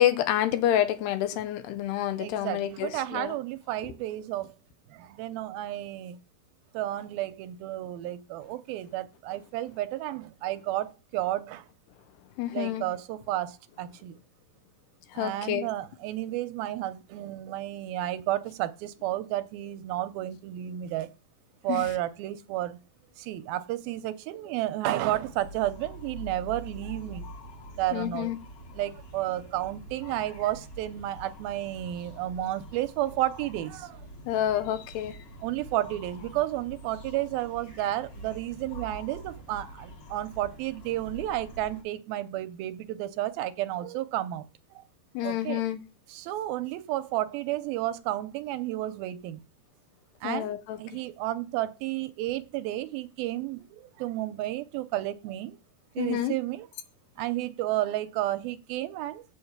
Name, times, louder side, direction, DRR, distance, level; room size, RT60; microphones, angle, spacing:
voice 1, 0.0-3.3 12.4-12.9 15.1-15.7 21.7-21.9 27.9-28.4 34.3-35.2 45.1-45.8 50.2-50.8 56.0-56.3, left 12 dB, 80° left, 3.0 m, -28 dB
voice 2, 2.2-4.5 4.9-6.2 6.7-11.7 12.5-14.2 15.1-21.1 21.6-22.8 23.2-27.3 27.8-28.3 28.7-34.1 35.4-44.5 44.7-44.8 45.2-45.6 46.1-49.4 50.2-55.6 56.0-56.7 57.2-59.2, right 14 dB, 80° right, 2.2 m, -32 dB
sound 1, 25.1-41.8, right 1 dB, 35° left, 2.8 m, -45 dB
8.8 x 5.7 x 8.0 m
omnidirectional pair, 4.8 m